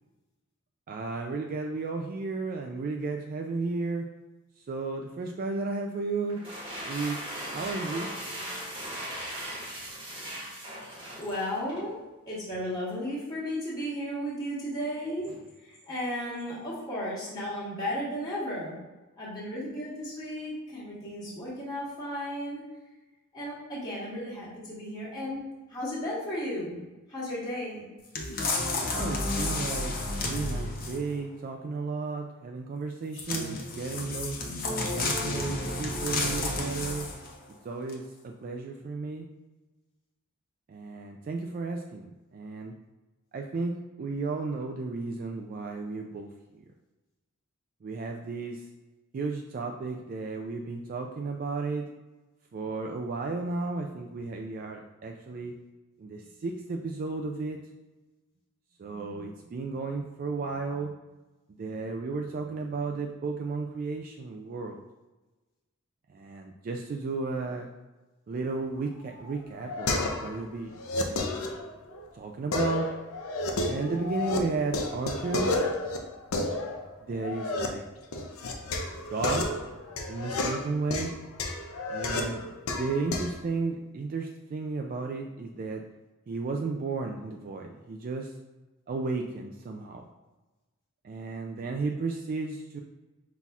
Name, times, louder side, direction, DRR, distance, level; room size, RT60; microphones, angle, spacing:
voice 1, 0.9-4.1 4.7-6.4 6.8-7.2 7.5-8.4 28.9-29.9 30.2-34.4 34.9-37.1 37.6-39.3 40.7-42.7 43.3-46.3 47.8-48.6 49.1-51.8 52.5-55.5 56.0-57.6 58.8-61.0 61.6-64.8 66.1-67.7 68.3-69.9 70.2-71.3 72.1-72.9 73.6-75.7 77.1-77.8 79.1-79.6 80.1-81.1 81.9-82.5 82.8-85.8 86.3-88.3 88.9-90.0 91.0-92.8, right 3 dB, 40° right, 2 dB, 0.3 m, -33 dB
sound 1, 6.3-11.9, right 1 dB, 25° right, 1.2 m, -38 dB
voice 2, 11.2-12.0 12.3-18.8 19.2-22.6 23.3-25.4 25.7-26.8 27.1-27.8, equal, 20° left, -9 dB, 1.4 m, -34 dB
sound 2, 28.1-31.1 33.1-37.3 37.9-38.0, left 2 dB, 40° left, 0.7 m, -31 dB
sound 3, 69.0-70.4 70.7-72.0 72.5-74.4 74.7-77.7 78.1-83.4, left 2 dB, 80° left, 0.6 m, -31 dB
5.5 x 4.0 x 2.4 m, 1.1 s
head